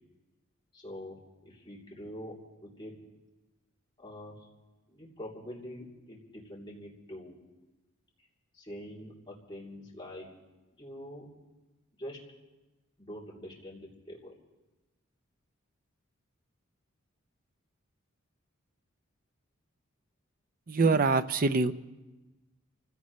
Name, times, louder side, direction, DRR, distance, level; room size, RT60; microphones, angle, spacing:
voice 1, 0.7-1.2 1.4-2.3 2.6-3.0 4.0-4.4 4.9-7.3 8.5-10.3 10.8-11.3 12.0-12.2 13.0-14.4, equal, 25° left, -5 dB, 3.2 m, -44 dB
voice 2, 20.7-21.7, right 3 dB, 45° right, 12 dB, 0.6 m, -24 dB
28.0 x 16.5 x 3.2 m, 1.1 s
head